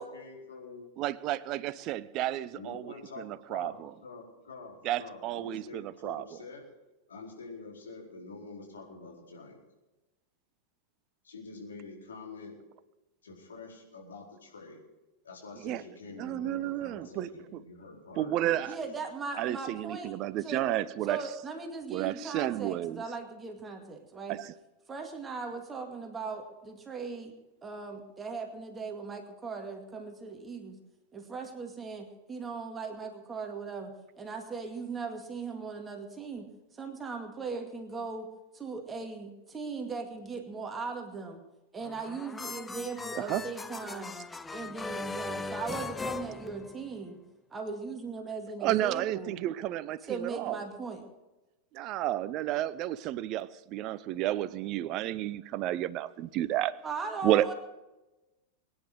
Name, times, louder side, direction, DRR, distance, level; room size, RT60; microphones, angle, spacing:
voice 1, 0.0-0.9 2.5-6.6 7.1-9.6 11.2-12.6 13.2-14.8 15.2-18.9, left 3 dB, 70° left, 4.7 m, -47 dB
voice 2, 1.0-3.7 4.8-6.4 15.6-15.8 16.2-17.6 18.2-18.8 19.4-21.2 21.9-23.0 24.3-24.5 43.2-43.4 48.6-50.6 51.7-56.8 57.2-57.5, right 14 dB, 40° right, 0.6 m, -31 dB
voice 3, 18.7-20.1 20.4-20.6 21.1-24.4 24.9-27.3 27.6-30.8 31.1-38.3 38.5-41.4 41.7-44.1 44.5-47.2 47.5-49.4 50.1-51.0 56.8-57.5, right 4 dB, 15° right, 2.3 m, -39 dB
sound 1, 41.8-47.1, left 4 dB, 10° left, 0.6 m, -39 dB
23.0 x 10.0 x 4.9 m
figure-of-eight pair, 90°, 0 cm